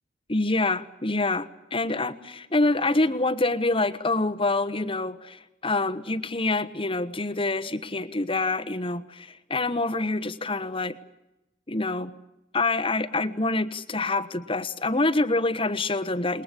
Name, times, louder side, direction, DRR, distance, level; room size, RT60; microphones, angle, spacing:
voice 1, 0.3-11.0 11.7-12.1 12.5-16.4, left 2 dB, 30° left, 11 dB, 1.2 m, -26 dB
28.0 x 21.5 x 8.4 m, 0.92 s
head